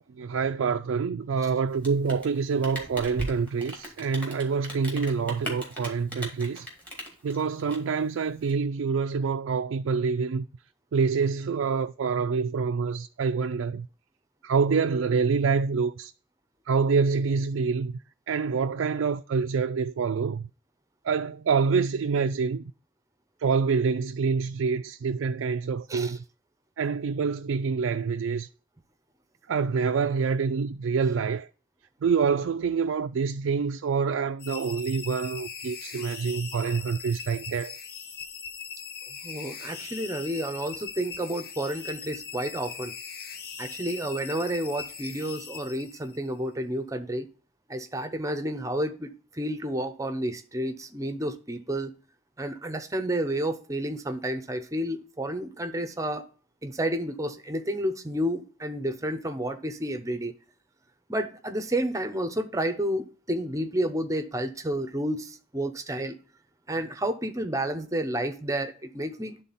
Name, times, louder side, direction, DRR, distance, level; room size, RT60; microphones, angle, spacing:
voice 1, 0.2-6.7 7.2-10.5 10.9-13.9 14.4-16.1 16.7-17.9 18.3-20.5 21.0-22.6 23.4-26.2 26.8-28.5 29.5-31.5 32.0-37.8, right 5 dB, 85° right, 0.4 m, -26 dB
Rain, 1.7-8.5, equal, 10° left, 2.2 m, -39 dB
sound 1, 34.4-46.3, left 6 dB, 50° left, 0.8 m, -40 dB
voice 2, 39.2-42.9 43.6-47.3 47.7-52.0 52.4-56.2 56.6-60.3 61.1-66.2 66.7-69.4, right 1 dB, 15° right, 0.7 m, -30 dB
11.0 x 3.8 x 4.1 m
head